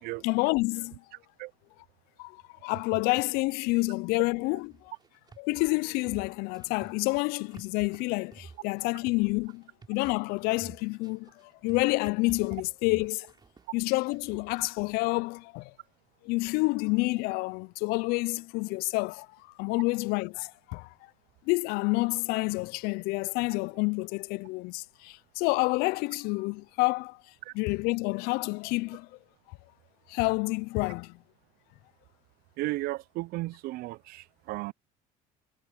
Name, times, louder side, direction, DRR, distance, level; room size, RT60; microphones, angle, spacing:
voice 1, 0.2-1.0 2.2-4.9 5.4-9.6 9.9-13.3 13.7-15.7 16.2-19.3 19.6-20.9 21.5-27.2 27.5-29.1 29.5-29.6 30.1-31.2, left 25 dB, 70° left, 0.4 m, -29 dB
sound 1, 4.7-14.7, right 4 dB, 25° right, 3.2 m, -51 dB
voice 2, 32.6-34.7, right 19 dB, 65° right, 0.6 m, -34 dB
supercardioid pair, 90°, 17 cm